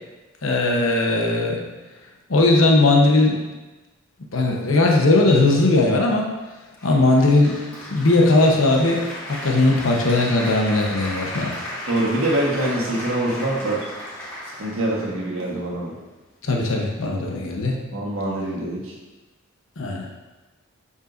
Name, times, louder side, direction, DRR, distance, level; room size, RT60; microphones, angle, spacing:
voice 1, 0.4-1.6 2.3-3.4 4.3-6.3 6.8-7.6 7.8-11.5 16.4-17.7 19.8-20.1, left 2 dB, 70° left, 0 dB, 1.0 m, -18 dB
Applause, 6.8-15.8, left 1 dB, 15° left, 2.0 m, -35 dB
voice 2, 11.9-13.8 14.6-15.9 17.9-18.9, right 1 dB, 85° right, -4 dB, 1.4 m, -24 dB
7.8 x 5.5 x 2.6 m, 1.2 s
head